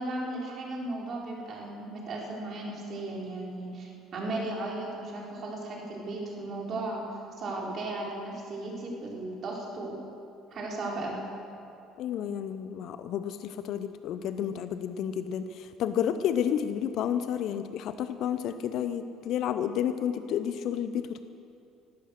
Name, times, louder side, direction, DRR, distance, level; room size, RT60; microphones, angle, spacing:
voice 1, 0.0-10.0 10.5-11.2, right 2 dB, 50° right, -2 dB, 4.2 m, -36 dB
voice 2, 12.0-21.2, left 9 dB, 60° left, 11 dB, 0.6 m, -31 dB
17.0 x 12.0 x 6.5 m, 2.7 s
hypercardioid pair, 60°, 0 cm